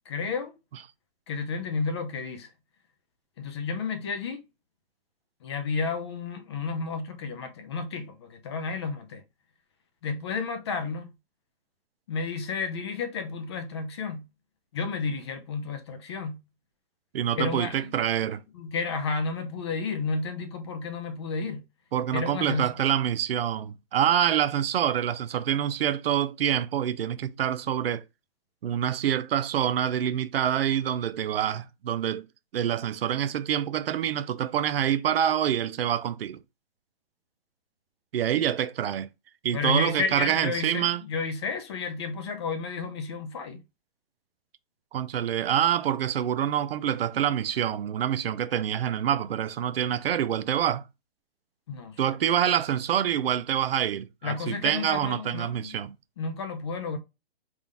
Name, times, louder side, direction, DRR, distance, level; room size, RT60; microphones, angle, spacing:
voice 1, 0.1-0.5 1.3-2.5 3.4-4.5 5.4-9.2 10.0-11.1 12.1-14.3 14.7-16.4 17.4-18.0 18.5-21.6 22.1-22.7 39.5-43.6 51.7-52.2 54.2-55.7 56.2-57.0, left 4 dB, 30° left, 0.4 m, -32 dB
voice 2, 17.1-18.4 21.9-28.0 28.6-32.3 32.5-36.4 38.1-39.1 39.4-41.0 44.9-50.8 52.0-55.9, right 10 dB, 75° right, 0.6 m, -26 dB
3.7 x 2.5 x 3.5 m
hypercardioid pair, 155°, 30 cm